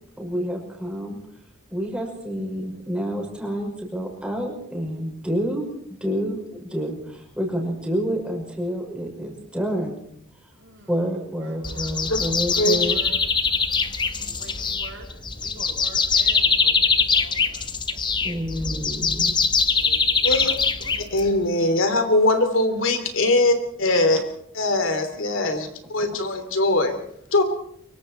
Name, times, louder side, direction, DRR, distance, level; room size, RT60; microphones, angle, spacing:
voice 1, 0.2-1.2 1.7-5.6 6.0-10.0 10.9-13.0 18.2-19.3 24.1-24.2, equal, 5° right, 0 dB, 5.8 m, -28 dB
voice 2, 10.6-13.2 14.2-18.8 19.7-21.0, right 2 dB, 65° right, 0 dB, 7.1 m, -46 dB
sound 1, 11.6-21.5, left 5 dB, 25° left, 1.2 m, -23 dB
voice 3, 12.6-12.9 20.2-20.5 21.1-24.2 24.5-27.0 27.3-27.4, left 2 dB, 75° left, 8 dB, 3.2 m, -21 dB
25.0 x 23.5 x 4.5 m, 0.67 s
head